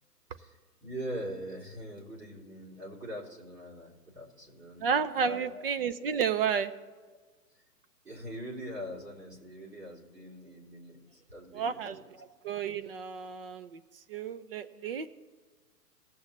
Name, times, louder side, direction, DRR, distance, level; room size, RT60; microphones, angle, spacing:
voice 1, 0.4-4.9 5.2-5.6 7.5-7.6 8.0-12.1, equal, 90° right, -2 dB, 3.9 m, -42 dB
voice 2, 4.8-6.7 11.5-12.0 12.4-13.8 14.1-15.1, right 6 dB, 40° right, 12 dB, 0.5 m, -31 dB
19.0 x 8.0 x 3.2 m, 1.4 s
hypercardioid pair, 125°, 47 cm